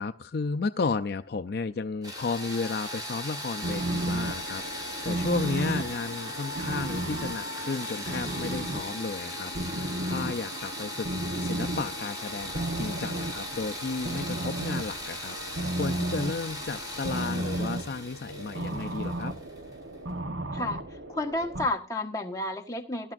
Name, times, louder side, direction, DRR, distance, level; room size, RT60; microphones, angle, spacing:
voice 1, 0.0-19.4, left 4 dB, 60° left, 7 dB, 0.5 m, -33 dB
sound 1, 2.0-19.7, left 1 dB, 20° right, 4.9 m, -38 dB
sound 2, 3.6-21.7, right 1 dB, 85° right, 1.2 m, -34 dB
voice 2, 20.5-23.1, left 2 dB, 20° left, 1 dB, 1.3 m, -31 dB
18.0 x 12.0 x 2.5 m, 0.34 s
head